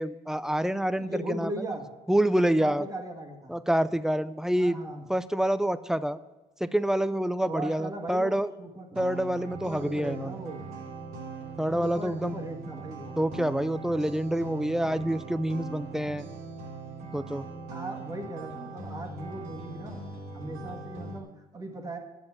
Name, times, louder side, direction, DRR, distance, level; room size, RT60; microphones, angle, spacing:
voice 1, 0.0-1.7 2.1-2.9 3.5-4.8 5.1-6.2 6.6-8.5 9.0-10.3 11.6-12.4 13.2-16.3 17.1-17.5, right 1 dB, 5° right, 15 dB, 0.4 m, -27 dB
voice 2, 1.0-1.9 2.4-3.5 4.5-5.0 7.5-8.9 9.7-10.6 11.7-13.2 17.7-20.0 20.3-21.3 21.5-22.0, right 2 dB, 25° right, 2 dB, 1.7 m, -38 dB
sound 1, 9.0-21.2, right 3 dB, 80° right, 2.7 m, -41 dB
9.9 x 7.6 x 5.9 m, 1.1 s
cardioid pair, 110°, 15 cm